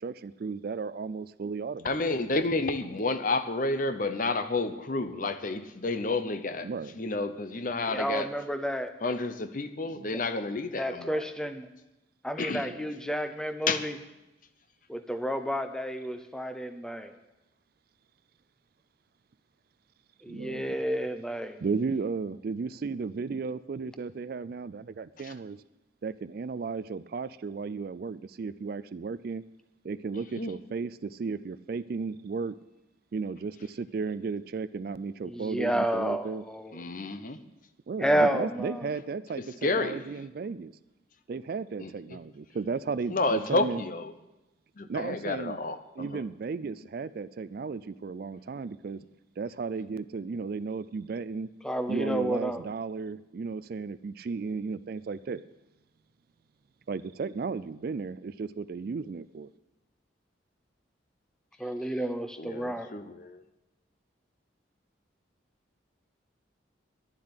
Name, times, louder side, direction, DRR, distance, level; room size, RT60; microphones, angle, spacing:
voice 1, 0.0-2.0 6.6-7.0 9.9-10.1 12.7-12.8 20.3-20.7 21.6-25.6 26.0-29.4 29.8-32.6 33.1-36.4 37.9-40.7 41.3-43.8 44.9-45.6 46.0-49.0 49.4-51.5 51.9-55.4 56.9-59.5, right 4 dB, 50° right, 16 dB, 0.3 m, -34 dB
voice 2, 1.8-6.7 7.0-8.3 9.0-11.2 12.4-12.7 13.7-13.9 25.2-25.3 30.4-30.5 36.7-37.4 39.4-40.0 41.8-41.9 43.1-44.1 44.8-46.2 62.4-63.4, left 3 dB, 45° left, 10 dB, 0.8 m, -30 dB
voice 3, 7.9-8.9 10.8-11.7 12.2-13.9 14.9-17.2 20.2-21.6 35.2-36.8 38.0-38.9 51.6-52.6 61.6-62.9, right 1 dB, 5° left, 8 dB, 0.7 m, -30 dB
11.5 x 7.4 x 9.6 m, 0.98 s
head